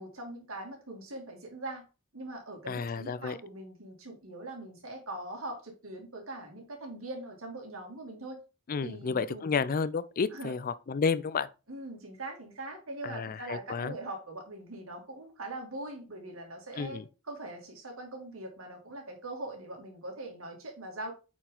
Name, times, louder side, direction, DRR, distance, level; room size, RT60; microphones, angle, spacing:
voice 1, 0.0-1.8 2.1-8.4 8.8-9.5 10.3-10.6 11.7-21.1, right 2 dB, 75° right, 2.5 m, -42 dB
voice 2, 2.7-3.4 8.7-11.5 13.0-14.0 16.8-17.0, left 5 dB, 45° left, 0.4 m, -31 dB
8.5 x 4.6 x 3.9 m
head